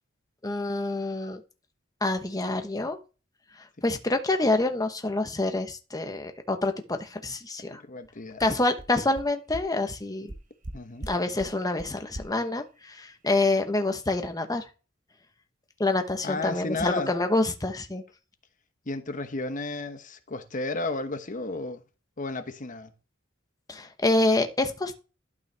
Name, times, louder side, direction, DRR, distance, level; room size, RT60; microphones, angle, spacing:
voice 1, 0.4-1.4 2.0-3.0 3.8-7.8 8.4-10.3 11.1-14.7 15.8-18.0 23.7-25.0, left 2 dB, 20° left, 1.1 m, -27 dB
voice 2, 7.7-8.5 10.7-11.1 16.2-17.1 18.9-21.8 22.2-22.9, left 2 dB, 40° left, 1.0 m, -33 dB
sound 1, 8.0-8.1 8.4-8.5 8.8-8.9 9.2-9.3 9.5-9.6 9.9-10.0 10.3-10.7 11.0-11.1 11.4-11.5 11.8-11.9 12.1-12.2, right 1 dB, 40° right, 1.1 m, -38 dB
12.0 x 5.6 x 3.4 m
head